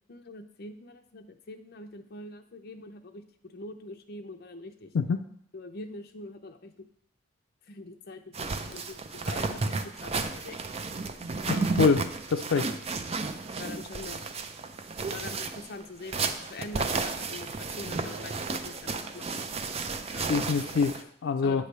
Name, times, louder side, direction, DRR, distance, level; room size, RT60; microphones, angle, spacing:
voice 1, 0.1-4.9 5.5-6.9 7.7-10.6 11.4-11.8 12.5-12.7 13.5-14.3 15.1-19.4 20.1-20.3 21.4-21.7, left 2 dB, 55° left, 5 dB, 0.7 m, -44 dB
sound 1, 8.3-21.0, right 4 dB, 35° right, 0.4 m, -33 dB
voice 2, 11.5-12.0 12.3-12.6 20.3-21.6, left 5 dB, 90° left, 7 dB, 0.4 m, -25 dB
8.9 x 3.3 x 6.6 m, 0.69 s
head